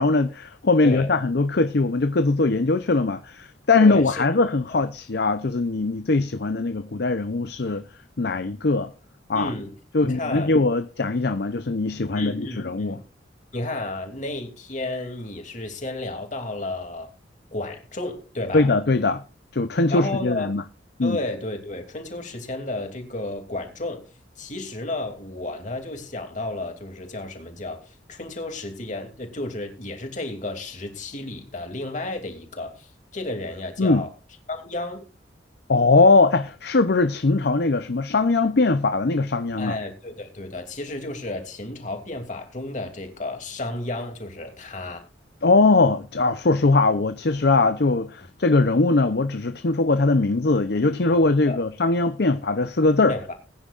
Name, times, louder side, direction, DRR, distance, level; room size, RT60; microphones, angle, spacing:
voice 1, 0.0-7.8 8.2-8.9 9.3-9.5 9.9-13.0 18.5-19.2 19.5-20.6 21.0-21.2 33.8-34.0 35.7-39.8 45.4-53.2, left 3 dB, 60° left, 0.7 m, -21 dB
voice 2, 0.8-1.1 3.8-4.2 4.7-4.8 9.3-9.7 10.0-10.5 12.1-13.0 13.5-17.1 17.5-18.7 19.9-20.5 21.0-24.1 24.4-34.1 34.5-35.0 39.6-45.0 51.5-51.6 53.1-53.3, left 2 dB, 45° left, 2.8 m, -32 dB
21.0 x 10.0 x 2.5 m
head